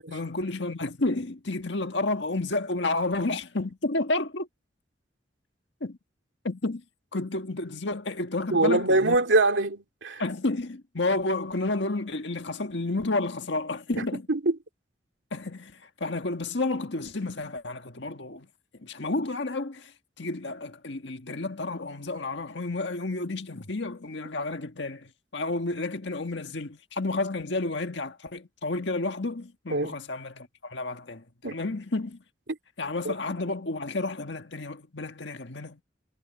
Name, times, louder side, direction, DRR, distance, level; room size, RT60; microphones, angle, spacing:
voice 1, 0.1-4.5 5.8-6.0 6.4-6.8 7.1-9.2 10.2-14.3 15.3-18.5 18.8-19.9 20.2-32.2 32.8-35.8, left 2 dB, 70° left, 1.6 m, -31 dB
voice 2, 8.5-10.2 14.0-14.6 29.7-30.0 31.4-31.6 33.0-33.1, right 2 dB, 80° right, 2.5 m, -24 dB
head